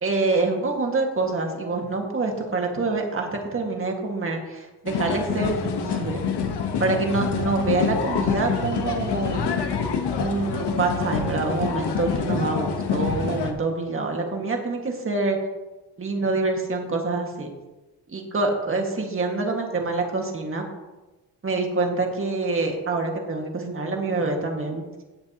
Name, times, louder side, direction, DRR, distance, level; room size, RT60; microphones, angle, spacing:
voice 1, 0.0-6.2 6.8-9.5 10.2-15.4 16.0-17.5 18.1-20.6 21.4-24.8, right 3 dB, 30° right, 1 dB, 2.0 m, -26 dB
sound 1, 4.9-13.5, left 6 dB, 75° left, 1.3 m, -26 dB
17.0 x 7.3 x 3.0 m, 1.1 s
cardioid pair, 140°, 41 cm